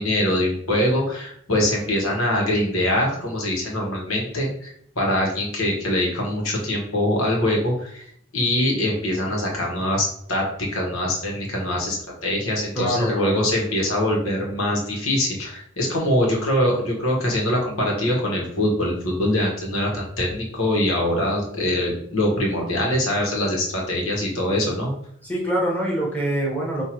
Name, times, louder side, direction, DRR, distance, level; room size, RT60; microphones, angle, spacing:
voice 1, 0.0-4.7 4.9-8.0 8.3-10.5 10.7-24.9, left 1 dB, 85° left, -1 dB, 1.5 m, -23 dB
voice 2, 12.7-13.5 25.2-26.8, right 1 dB, 10° left, -4 dB, 1.2 m, -25 dB
5.6 x 2.8 x 3.1 m, 0.66 s
head